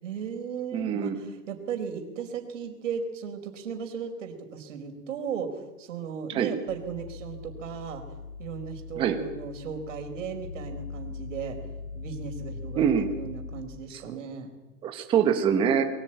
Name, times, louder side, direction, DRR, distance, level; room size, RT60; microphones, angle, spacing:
voice 1, 0.0-8.0 8.4-11.6 11.9-12.8 13.1-14.5, right 7 dB, 60° right, 4 dB, 4.5 m, -36 dB
voice 2, 0.7-1.2 6.3-6.5 9.0-9.2 12.8-13.1 13.9-14.2 14.8-15.8, right 8 dB, 10° right, 5 dB, 1.4 m, -24 dB
sound 1, 6.7-13.6, left 4 dB, 55° left, 5.6 m, -40 dB
22.0 x 17.0 x 9.0 m, 1.1 s
supercardioid pair, 175°, 42 cm